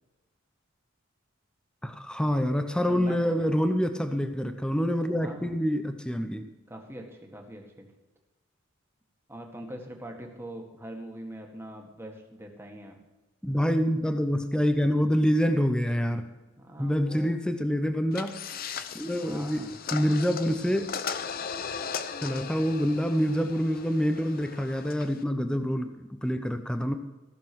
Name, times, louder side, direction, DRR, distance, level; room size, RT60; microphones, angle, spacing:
voice 1, 1.8-6.4 13.4-16.2 16.8-18.3 18.9-19.6 19.9-20.9 22.2-26.9, equal, 5° left, 8 dB, 0.7 m, -26 dB
voice 2, 2.9-3.6 5.2-5.6 6.7-7.9 9.3-13.0 16.6-17.4 19.2-19.8, right 1 dB, 10° right, 1 dB, 1.8 m, -42 dB
sound 1, 18.1-25.2, left 6 dB, 45° left, 0.7 m, -38 dB
15.0 x 6.9 x 6.1 m, 1.1 s
head